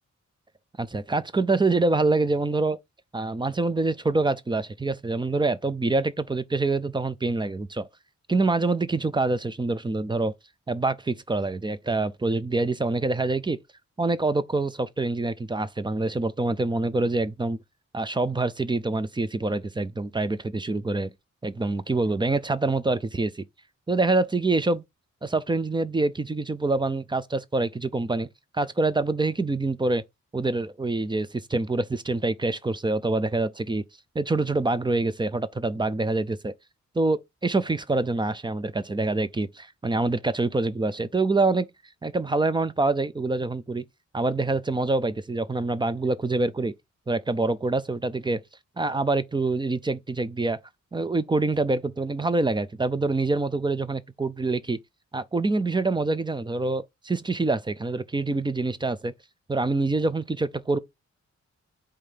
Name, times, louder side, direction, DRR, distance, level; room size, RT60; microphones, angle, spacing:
voice 1, 0.8-2.8 3.1-7.9 8.3-10.3 10.7-13.6 14.0-17.6 17.9-21.1 21.4-23.4 23.9-24.8 25.2-28.3 28.5-30.0 30.3-33.8 34.2-36.5 37.0-41.7 42.0-43.8 44.1-46.7 47.1-48.4 48.8-50.6 50.9-54.8 55.1-59.1 59.5-60.8, right 3 dB, 15° right, 0.4 m, -25 dB
5.1 x 3.3 x 5.6 m
wide cardioid pair, 180°, 30 cm